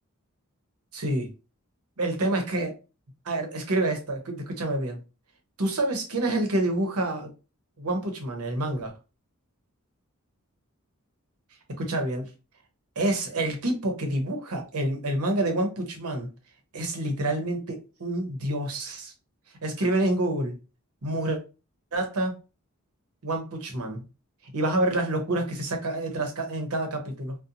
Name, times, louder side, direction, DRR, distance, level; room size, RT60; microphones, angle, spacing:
voice 1, 0.9-1.3 2.0-2.8 3.2-5.0 5.6-7.3 7.8-8.9 11.8-12.3 13.0-16.3 16.7-19.1 19.6-20.6 21.0-21.4 21.9-22.4 23.2-24.0 24.5-27.3, right 1 dB, 80° right, 0.8 m, -27 dB
2.7 x 2.1 x 2.5 m
head